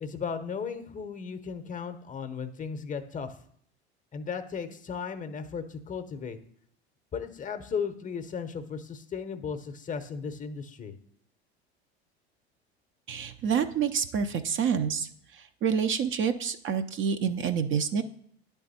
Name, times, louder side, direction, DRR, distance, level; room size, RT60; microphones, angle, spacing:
voice 1, 0.0-3.3 4.1-6.4 7.1-10.9, left 6 dB, 25° left, 9 dB, 0.7 m, -35 dB
voice 2, 13.1-15.1 15.6-18.0, right 7 dB, 40° right, 8 dB, 0.5 m, -27 dB
10.0 x 3.5 x 4.1 m, 0.65 s
hypercardioid pair, 75°, 33 cm